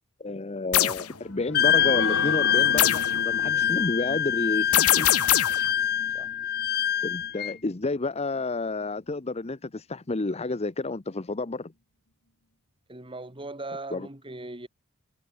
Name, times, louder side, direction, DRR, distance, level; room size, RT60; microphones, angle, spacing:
voice 1, 0.2-5.1 7.0-11.7 13.9-14.1, left 3 dB, 30° left, 0.8 m, -30 dB
sound 1, 0.7-1.0 2.8-3.1 4.7-5.7, left 12 dB, 85° left, 1.4 m, -22 dB
sound 2, 1.0-8.1 8.5-8.6 9.0-9.1, left 2 dB, 60° left, 6.4 m, -38 dB
Wind instrument woodwind instrument, 1.5-7.5, left 10 dB, 45° left, 1.6 m, -25 dB
voice 2, 12.9-14.7, right 2 dB, 25° right, 3.4 m, -39 dB
head